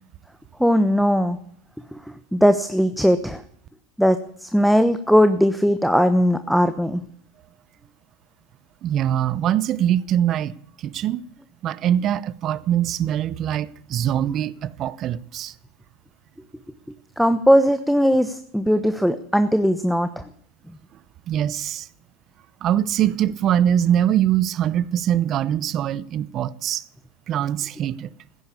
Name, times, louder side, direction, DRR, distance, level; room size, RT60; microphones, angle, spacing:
voice 1, 0.6-1.4 1.9-2.0 2.3-3.4 4.0-7.0 17.2-20.1, equal, ahead, 1.0 m, -19 dB
voice 2, 8.8-11.2 11.6-15.5 21.3-21.9 22.6-26.8 27.3-28.1, right 10 dB, 45° right, 0.8 m, -23 dB
15.0 x 10.5 x 8.4 m
supercardioid pair, 105°, 0 cm